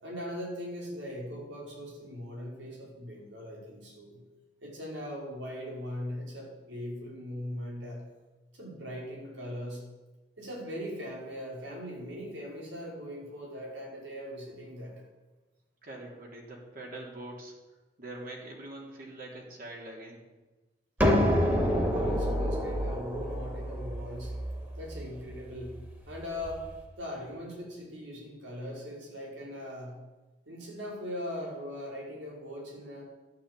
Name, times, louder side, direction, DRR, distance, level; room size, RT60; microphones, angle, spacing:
voice 1, 0.0-4.2 4.6-8.0 8.5-9.8 10.4-14.9 21.6-24.3 24.8-25.8 26.1-26.7 27.0-30.0 30.5-33.1, equal, 90° right, -2 dB, 5.5 m, -40 dB
voice 2, 15.8-17.5 18.0-20.2, right 2 dB, 50° right, -1 dB, 3.6 m, -43 dB
sound 1, 21.0-26.6, equal, 10° right, 2.6 m, -29 dB
12.0 x 10.5 x 8.4 m, 1.2 s
head